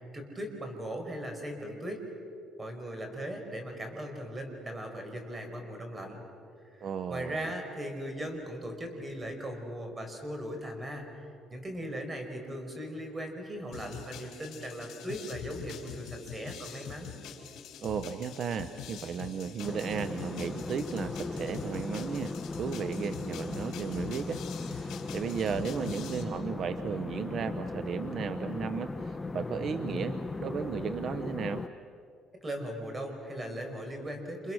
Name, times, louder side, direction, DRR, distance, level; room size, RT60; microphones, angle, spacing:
voice 1, 0.1-2.0 2.6-6.2 6.6-11.1 11.5-17.1 32.4-34.5, equal, 20° right, 4 dB, 5.2 m, -38 dB
voice 2, 6.8-7.5 17.8-31.6, right 6 dB, 50° right, 10 dB, 0.9 m, -35 dB
sound 1, 13.7-26.2, left 8 dB, 65° left, 5.8 m, -45 dB
sound 2, 19.6-31.7, left 3 dB, 15° left, 0.8 m, -37 dB
30.0 x 29.5 x 6.3 m, 2.5 s
cardioid pair, 115°, 0 cm